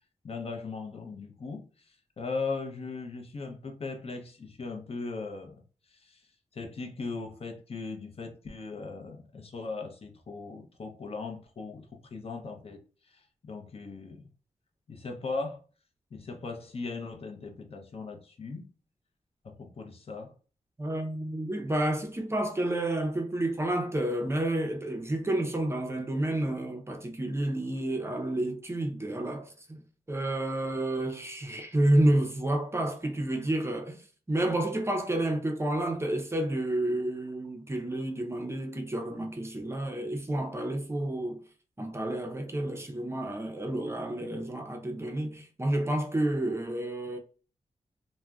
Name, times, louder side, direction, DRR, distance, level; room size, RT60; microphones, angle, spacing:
voice 1, 0.2-5.6 5.9-6.2 6.5-12.8 13.0-14.3 14.9-15.6 16.1-18.7 19.4-20.3, left 4 dB, 50° left, 0.6 m, -38 dB
voice 2, 20.8-29.8 30.1-41.4 41.8-47.2, right 1 dB, 20° right, 0.5 m, -30 dB
2.4 x 2.0 x 3.4 m
wide cardioid pair, 90°, 13 cm